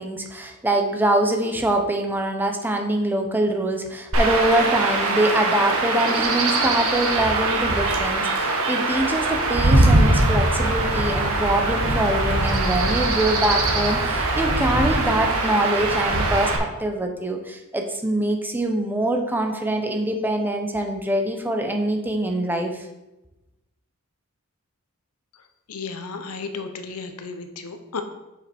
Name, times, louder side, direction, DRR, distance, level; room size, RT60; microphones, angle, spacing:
voice 1, 0.0-22.9, right 1 dB, 10° right, 3 dB, 0.9 m, -24 dB
Chirp tweet / Wind / Stream, 4.1-16.6, right 2 dB, 70° right, 1.3 m, -21 dB
voice 2, 25.7-28.0, left 4 dB, 85° left, 7 dB, 0.8 m, -33 dB
7.3 x 5.7 x 4.4 m, 0.97 s
head